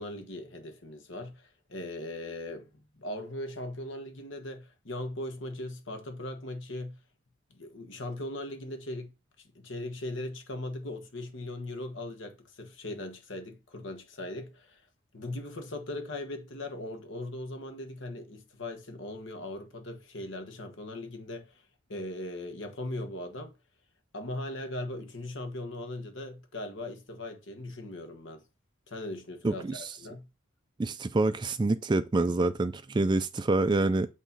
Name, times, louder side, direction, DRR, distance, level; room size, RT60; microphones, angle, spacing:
voice 1, 0.0-7.0 7.5-9.1 9.4-14.8 15.1-21.6 21.9-23.5 24.1-28.4 28.9-30.3, left 1 dB, 65° left, 1.4 m, -39 dB
voice 2, 29.4-29.8 30.8-34.1, right 2 dB, 20° right, 0.3 m, -26 dB
8.5 x 3.0 x 5.4 m
head